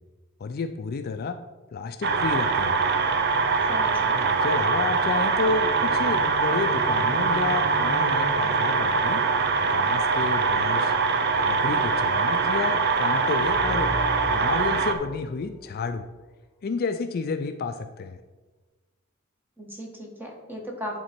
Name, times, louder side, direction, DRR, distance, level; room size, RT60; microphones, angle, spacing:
voice 1, 0.4-1.4 1.7-2.8 4.2-9.2 9.7-11.0 11.4-14.0 14.3-16.1 16.6-18.2, left 4 dB, 45° left, 9 dB, 0.4 m, -30 dB
sound 1, 2.0-14.9, right 4 dB, 55° right, 0.6 m, -23 dB
voice 2, 3.7-4.2 19.6-21.0, equal, 10° right, -1 dB, 1.4 m, -37 dB
Bowed string instrument, 5.4-10.1, right 2 dB, 30° right, 2.5 m, -40 dB
sound 2, 13.4-16.2, left 1 dB, 10° left, 0.7 m, -36 dB
11.0 x 3.9 x 4.3 m, 1.2 s
head